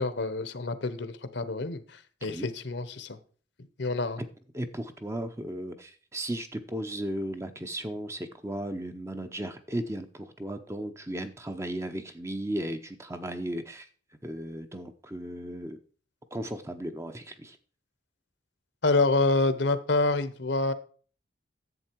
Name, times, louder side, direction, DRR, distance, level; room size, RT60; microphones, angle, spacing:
voice 1, 0.0-3.2 3.8-4.2 18.8-20.7, left 3 dB, 60° left, 13 dB, 0.9 m, -27 dB
voice 2, 4.5-13.9 14.2-15.8 16.3-17.6, right 1 dB, 15° right, 8 dB, 0.7 m, -35 dB
11.0 x 7.6 x 4.5 m, 0.43 s
head